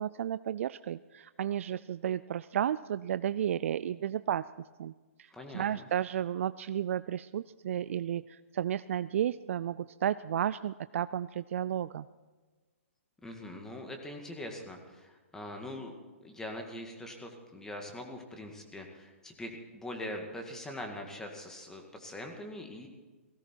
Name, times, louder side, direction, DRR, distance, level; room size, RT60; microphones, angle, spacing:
voice 1, 0.0-4.5 4.8-4.9 5.5-12.1, right 10 dB, 65° right, 15 dB, 0.4 m, -32 dB
voice 2, 5.3-5.9 13.2-15.9 16.2-22.9, left 1 dB, 5° left, 3 dB, 2.0 m, -42 dB
18.5 x 16.0 x 4.6 m, 1.3 s
hypercardioid pair, 140°, 8 cm